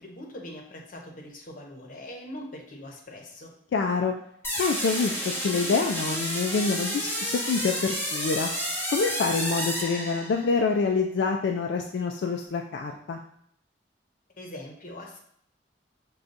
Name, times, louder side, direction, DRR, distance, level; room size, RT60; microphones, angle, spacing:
voice 1, 0.0-3.6 14.4-15.2, left 1 dB, 50° left, 0 dB, 0.8 m, -42 dB
voice 2, 3.7-4.1 4.5-8.5 8.9-13.2, left 4 dB, 80° left, 3 dB, 0.3 m, -26 dB
sound 1, 4.4-10.6, equal, 15° left, 0.8 m, -31 dB
6.4 x 2.3 x 2.5 m, 0.69 s
head